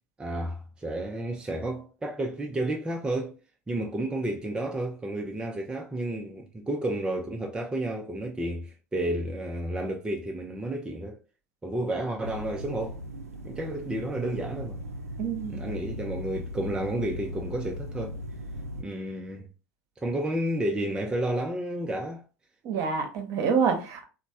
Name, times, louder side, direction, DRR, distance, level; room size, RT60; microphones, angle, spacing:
voice 1, 0.2-3.4 3.7-11.2 11.6-13.0 13.4-14.8 15.5-18.2 18.8-19.5 20.0-22.2, right 1 dB, 10° right, 0.4 m, -31 dB
sound 1, 12.2-18.8, equal, 85° right, 0.4 m, -38 dB
voice 2, 15.2-15.8 22.6-24.1, right 6 dB, 50° right, 0.8 m, -27 dB
3.1 x 2.1 x 2.7 m
figure-of-eight pair, 80°, 8 cm